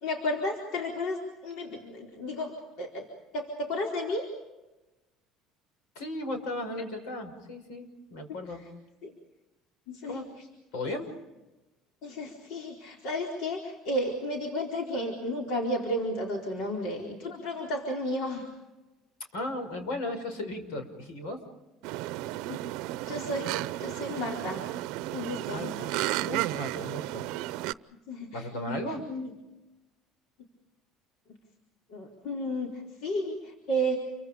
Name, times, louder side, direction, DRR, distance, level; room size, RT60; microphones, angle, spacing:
voice 1, 0.0-3.1 3.3-4.3 8.5-8.6 9.0-9.2 9.9-10.5 10.9-11.0 12.0-18.5 22.5-22.6 23.1-24.7 25.1-25.8 28.1-28.8 29.1-29.3 31.9-34.0, equal, 70° left, 1 dB, 4.2 m, -33 dB
voice 2, 6.0-8.6 10.0-10.2 10.7-11.1 19.3-21.4 25.5-27.2 28.3-29.0, left 1 dB, 85° left, 7 dB, 5.9 m, -36 dB
sound 1, 21.8-27.7, right 16 dB, 75° right, 0.7 m, -33 dB
29.0 x 24.5 x 5.2 m, 1.1 s
cardioid pair, 125°, 0 cm